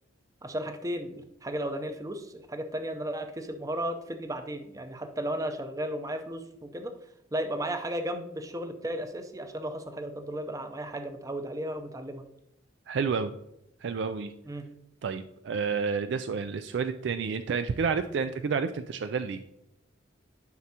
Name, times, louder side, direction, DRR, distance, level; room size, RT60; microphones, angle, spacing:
voice 1, 0.4-6.9 7.3-12.2 14.5-14.6, right 1 dB, 15° right, 7 dB, 0.6 m, -34 dB
voice 2, 12.9-13.3 13.8-14.3 15.0-19.4, right 5 dB, 60° right, 9 dB, 0.3 m, -30 dB
9.4 x 6.0 x 2.8 m, 0.82 s
head